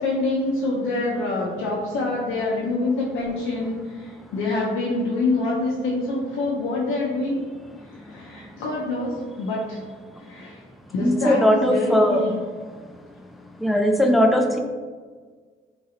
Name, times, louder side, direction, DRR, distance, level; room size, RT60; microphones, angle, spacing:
voice 1, 0.0-7.4 7.9-9.8 10.2-10.6 10.9-12.4, left 2 dB, 85° left, -5 dB, 0.5 m, -26 dB
voice 2, 11.0-12.2 13.6-14.6, equal, ahead, 3 dB, 0.3 m, -19 dB
3.0 x 2.6 x 2.8 m, 1.5 s
cardioid pair, 90°, 20 cm